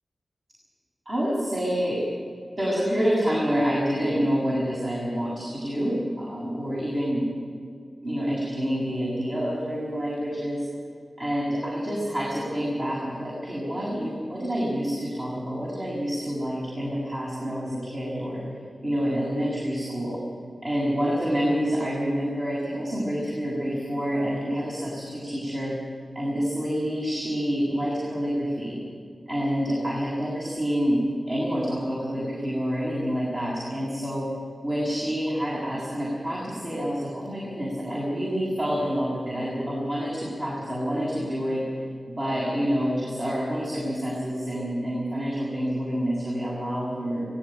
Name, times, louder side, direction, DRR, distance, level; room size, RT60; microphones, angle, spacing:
voice 1, 1.1-2.1 2.6-7.3 8.0-10.7 11.2-18.5 18.8-20.2 20.6-25.8 26.1-28.8 29.3-34.3 34.6-41.6 42.1-47.3, equal, 50° right, -5 dB, 7.5 m, -27 dB
20.0 x 17.0 x 9.3 m, 2.1 s
wide cardioid pair, 60°, 0 cm